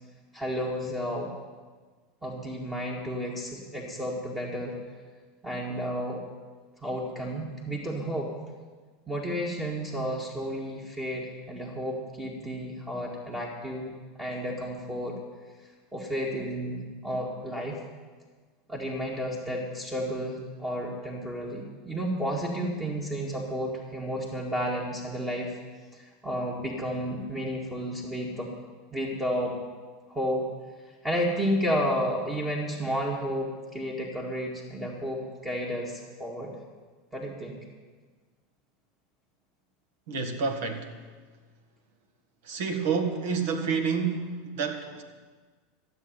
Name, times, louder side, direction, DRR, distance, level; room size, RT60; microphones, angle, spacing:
voice 1, 0.3-1.3 2.2-4.8 5.4-6.2 6.8-8.3 9.1-13.9 14.2-15.2 15.9-17.8 18.7-25.6 25.9-28.5 28.9-29.6 30.1-30.5 31.0-36.5 37.1-37.6, equal, 15° right, -3 dB, 2.2 m, -32 dB
voice 2, 40.1-41.0 42.4-45.0, right 5 dB, 60° right, 5 dB, 1.8 m, -29 dB
13.0 x 7.9 x 9.6 m, 1.4 s
figure-of-eight pair, 80°, 0 cm